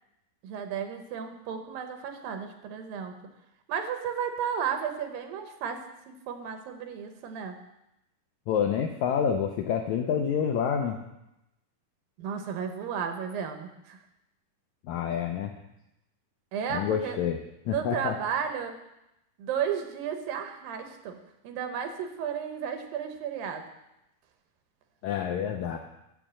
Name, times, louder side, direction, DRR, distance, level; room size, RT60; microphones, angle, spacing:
voice 1, 0.4-3.2 3.7-7.6 12.2-14.0 16.5-17.2 17.7-18.8 19.4-21.2 21.4-23.7, right 7 dB, 80° right, 6 dB, 2.7 m, -33 dB
voice 2, 8.5-11.0 14.9-15.5 16.7-17.4 17.7-18.1 25.0-25.8, left 8 dB, 85° left, 3 dB, 1.6 m, -28 dB
7.1 x 7.0 x 7.4 m, 0.89 s
omnidirectional pair, 4.1 m